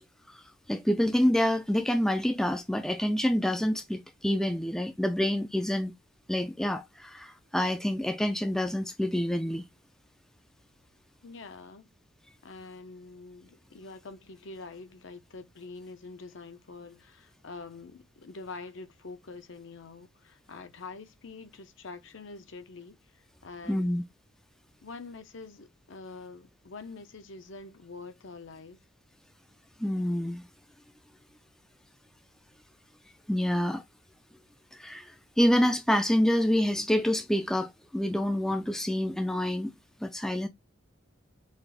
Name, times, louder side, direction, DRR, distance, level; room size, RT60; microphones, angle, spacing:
voice 1, 0.7-5.9 6.3-9.6 23.7-24.0 29.8-30.4 33.3-33.8 34.7-39.7 40.0-40.5, left 1 dB, ahead, 0.3 m, -27 dB
voice 2, 11.2-11.9 12.4-24.0 24.8-28.8, left 3 dB, 65° left, 0.7 m, -45 dB
4.0 x 2.5 x 3.3 m
head